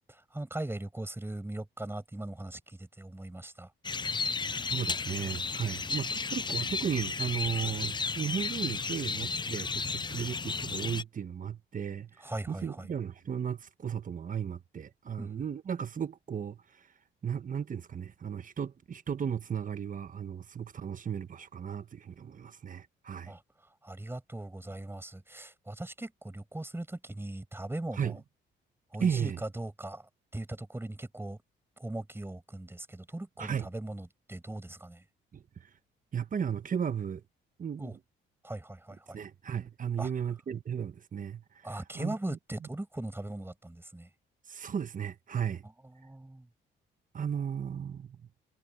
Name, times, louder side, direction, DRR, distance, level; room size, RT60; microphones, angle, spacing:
voice 1, 0.1-3.7 12.2-12.9 15.2-15.3 23.3-23.4 23.8-28.2 28.9-31.4 31.8-35.0 37.8-38.0 38.4-39.2 40.0-40.1 41.6-44.1 45.8-46.5, right 1 dB, 10° right, 7.9 m, -39 dB
sound 1, 3.8-11.0, left 4 dB, 25° left, 0.6 m, -33 dB
voice 2, 4.7-16.9 17.2-23.3 28.0-28.2 29.0-29.4 33.4-33.7 35.3-35.7 36.1-37.2 37.6-38.0 39.1-42.4 44.5-45.6 47.1-48.3, right 7 dB, 40° right, 1.3 m, -35 dB
cardioid pair, 90°, 20 cm